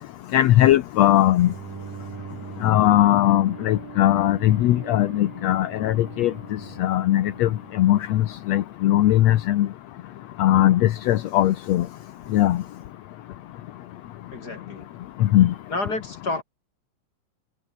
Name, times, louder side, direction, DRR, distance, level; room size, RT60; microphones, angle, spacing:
voice 1, 0.3-1.5 2.6-6.3 6.8-7.5 7.8-8.2 8.5-9.7 10.4-11.9 12.3-12.6 15.2-15.5, left 13 dB, 70° left, 1.8 m, -19 dB
Bowed string instrument, 1.3-8.6, right 7 dB, 75° right, 4.8 m, -42 dB
voice 2, 14.3-14.9 15.7-16.4, left 2 dB, 25° left, 4.5 m, -30 dB
omnidirectional pair, 3.9 m